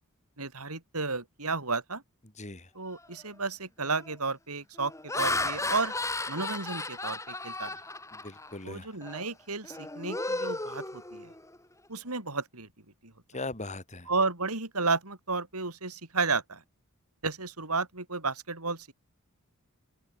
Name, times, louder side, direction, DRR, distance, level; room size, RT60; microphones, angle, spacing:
voice 1, 0.4-2.0 2.7-5.9 6.3-7.8 8.6-11.3 11.9-12.7 13.0-13.1 14.1-16.6 17.2-18.9, right 4 dB, 85° right, 5.3 m, -32 dB
voice 2, 2.4-2.7 8.1-8.9 13.3-14.1, left 2 dB, 30° left, 4.6 m, -39 dB
Laughter, 3.0-3.3 3.8-4.1 4.8-8.6 9.0-9.3 9.6-11.6, left 2 dB, 15° left, 4.8 m, -34 dB
open air
head